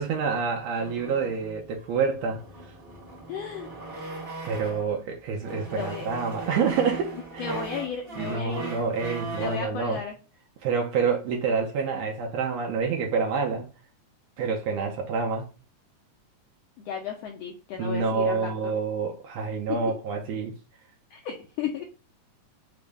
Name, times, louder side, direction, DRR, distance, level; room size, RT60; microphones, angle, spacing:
voice 1, 0.0-2.7 4.4-7.5 8.2-10.0 10.6-13.7 14.4-15.5 17.8-20.5, right 5 dB, 75° right, 1.6 m, -27 dB
sound 1, 0.8-5.0 5.4-9.7, right 3 dB, 40° right, 0.8 m, -39 dB
voice 2, 3.3-3.7 5.7-6.1 7.4-8.7 9.4-10.1 16.8-18.7 19.7-19.8 21.1-21.8, left 7 dB, 85° left, 1.4 m, -34 dB
4.8 x 2.1 x 3.2 m
omnidirectional pair, 3.5 m